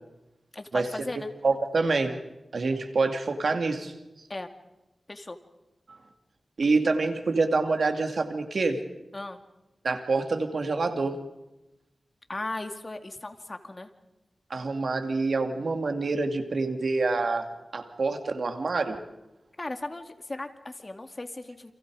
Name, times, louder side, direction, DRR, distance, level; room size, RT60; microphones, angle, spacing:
voice 1, 0.5-1.3 4.3-4.5 5.1-5.4 9.1-9.4 12.3-13.9 19.6-21.7, left 2 dB, 30° left, 7 dB, 2.3 m, -37 dB
voice 2, 1.4-2.2 2.5-3.9 5.9-6.0 6.6-8.8 9.8-11.2 14.5-17.5 17.7-19.0, right 3 dB, 70° right, 6 dB, 2.7 m, -26 dB
30.0 x 28.5 x 5.0 m, 0.97 s
wide cardioid pair, 95°, 0 cm